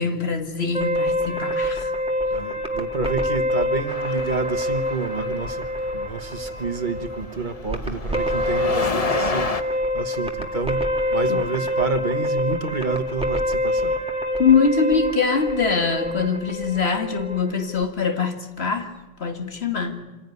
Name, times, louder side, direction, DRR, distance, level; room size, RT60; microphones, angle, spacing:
voice 1, 0.0-1.9 11.3-11.4 14.4-18.9 19.2-20.0, left 5 dB, 75° left, 2.1 m, -23 dB
sound 1, 0.7-17.8, left 1 dB, 5° right, 1.9 m, -26 dB
voice 2, 2.3-5.7 5.9-9.5 9.9-13.9, right 4 dB, 50° right, 1.3 m, -29 dB
sound 2, 3.9-9.6, left 4 dB, 40° left, 0.9 m, -32 dB
26.0 x 16.0 x 9.5 m
omnidirectional pair, 1.1 m